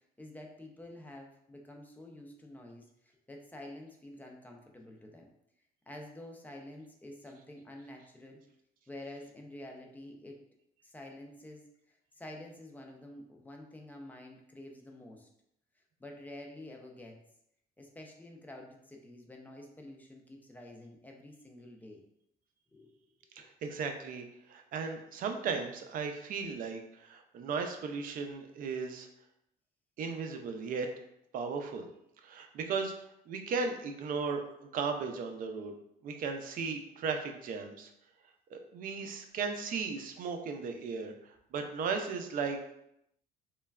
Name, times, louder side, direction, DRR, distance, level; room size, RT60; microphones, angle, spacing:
voice 1, 0.2-5.3 5.9-8.4 8.9-10.4 10.8-15.3 16.0-17.2 17.8-22.0 22.7-22.9, left 1 dB, 10° left, 1 dB, 0.4 m, -49 dB
voice 2, 23.4-24.2 24.5-29.1 30.0-30.9 31.3-31.9 32.2-32.9 33.3-35.7 36.0-37.9 38.5-41.1 41.5-42.6, right 5 dB, 55° right, 5 dB, 0.4 m, -36 dB
3.1 x 2.2 x 2.3 m, 0.76 s
cardioid pair, 110°, 17 cm